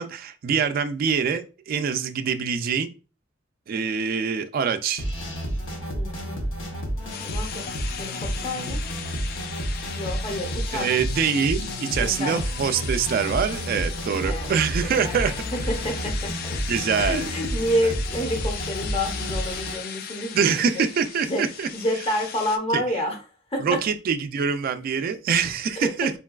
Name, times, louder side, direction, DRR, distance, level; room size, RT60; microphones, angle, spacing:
voice 1, 0.0-2.9 3.7-5.1 10.7-15.3 16.7-17.3 17.8-17.9 20.3-21.7 22.7-22.8 23.6-26.1, right 6 dB, 50° right, 8 dB, 0.3 m, -24 dB
sound 1, 5.0-19.7, equal, 90° left, 0.7 m, -30 dB
voice 2, 5.9-6.3 7.2-7.7 8.0-8.9 9.9-10.9 12.0-12.4 14.2-14.5 14.8-15.3 15.7-16.6 17.0-20.8 21.2-21.4 21.7-23.2 23.5-23.8 25.7-26.1, equal, 30° left, 2 dB, 0.8 m, -29 dB
sound 2, 7.1-22.6, left 8 dB, 50° left, 0.3 m, -37 dB
3.9 x 2.2 x 2.2 m, 0.34 s
head